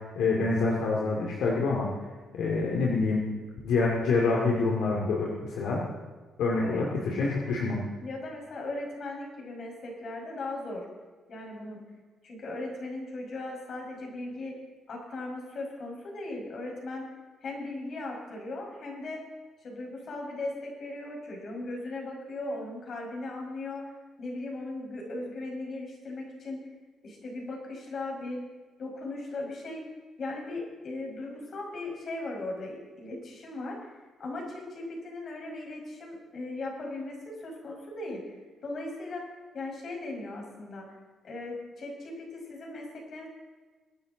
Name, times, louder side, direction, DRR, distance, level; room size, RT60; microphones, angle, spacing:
voice 1, 0.0-1.9 2.3-3.2 3.6-5.8 6.4-7.8, left 3 dB, 80° left, -2 dB, 2.4 m, -26 dB
voice 2, 8.0-10.9 11.3-11.8 12.2-14.5 14.9-17.1 17.4-19.2 19.6-23.8 24.2-26.6 27.0-28.4 28.8-29.9 30.2-38.4 38.6-39.2 39.5-40.9 41.2-43.3, left 2 dB, 55° left, 0 dB, 5.3 m, -38 dB
23.0 x 10.0 x 4.0 m, 1.3 s
cardioid pair, 90°, 0 cm